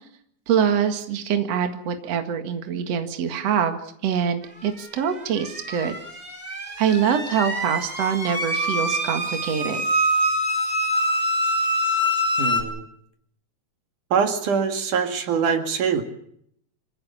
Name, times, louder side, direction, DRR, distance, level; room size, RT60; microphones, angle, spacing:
voice 1, 0.5-3.8 4.0-6.0 6.8-9.8, right 8 dB, 60° right, 7 dB, 2.9 m, -24 dB
sound 1, 5.0-12.6, equal, 10° right, 4.3 m, -25 dB
voice 2, 12.4-12.9 14.1-16.0, right 6 dB, 85° right, 7 dB, 3.7 m, -23 dB
26.0 x 16.5 x 7.1 m, 0.69 s
omnidirectional pair, 3.5 m